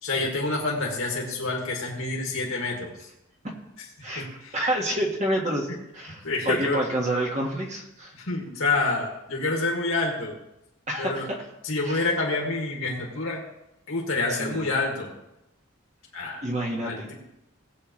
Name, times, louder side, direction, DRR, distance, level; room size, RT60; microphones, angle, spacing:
voice 1, 0.0-3.1 3.8-3.9 4.2-4.6 6.2-6.9 8.2-10.3 11.0-11.3 11.6-13.4 13.9-15.1 16.1-16.5 16.8-17.1, left 3 dB, 75° left, -2 dB, 2.2 m, -27 dB
voice 2, 4.5-5.7 5.9-8.1 10.9-11.3 11.8-12.1 14.3-14.6 16.4-17.1, right 1 dB, 35° right, -1 dB, 1.7 m, -28 dB
19.0 x 8.2 x 3.2 m, 0.88 s
head